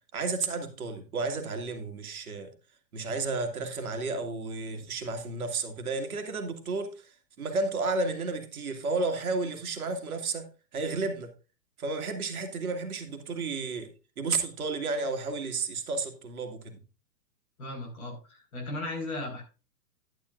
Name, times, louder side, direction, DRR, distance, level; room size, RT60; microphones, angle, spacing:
voice 1, 0.1-2.5 2.9-6.9 7.4-10.5 10.7-11.3 11.8-13.9 14.2-16.8, right 3 dB, 55° right, 2.1 m, -32 dB
voice 2, 17.6-19.4, left 2 dB, 55° left, 5.1 m, -36 dB
11.0 x 10.5 x 2.5 m
figure-of-eight pair, 120°, 50 cm